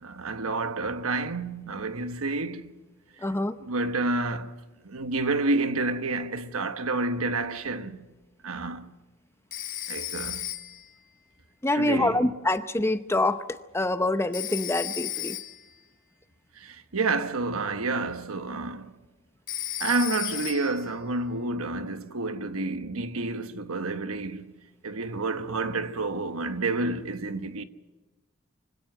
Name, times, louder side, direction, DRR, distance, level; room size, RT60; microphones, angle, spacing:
voice 1, 0.0-2.7 3.2-4.6 4.8-8.1 8.4-8.9 9.9-10.5 11.7-12.2 16.5-18.9 19.8-24.4 24.8-27.6, right 3 dB, 85° right, 1.2 m, -29 dB
voice 2, 3.2-3.6 11.6-15.4, left 2 dB, 10° left, 0.7 m, -26 dB
Telephone, 9.5-10.9 14.3-15.7 19.5-20.9, left 13 dB, 40° left, 1.0 m, -34 dB
24.5 x 17.5 x 7.9 m
head